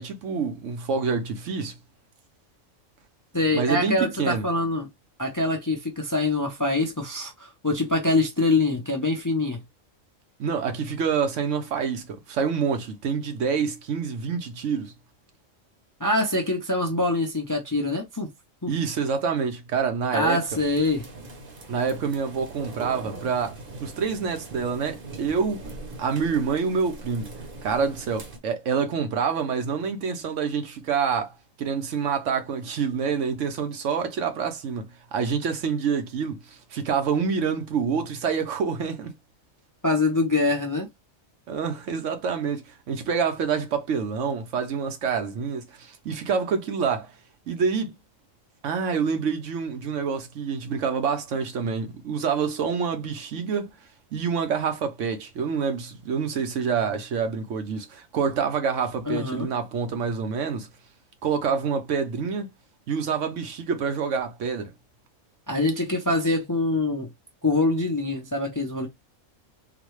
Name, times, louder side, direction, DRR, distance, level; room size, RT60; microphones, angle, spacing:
voice 1, 0.0-1.8 3.5-4.4 10.4-14.9 18.7-20.4 21.7-25.6 26.0-27.4 27.6-39.1 41.5-47.1 47.5-47.9 48.6-53.7 54.1-60.7 61.2-62.5 62.9-64.7, right 6 dB, 70° right, 1.0 m, -27 dB
voice 2, 3.3-4.9 5.2-9.6 16.0-18.3 18.6-18.7 20.1-21.1 39.8-40.9 59.1-59.5 65.5-67.1 67.4-68.9, left 2 dB, 25° left, 0.5 m, -24 dB
sound 1, 20.5-28.4, right 3 dB, 45° right, 1.0 m, -41 dB
3.9 x 2.2 x 3.1 m
omnidirectional pair, 1.4 m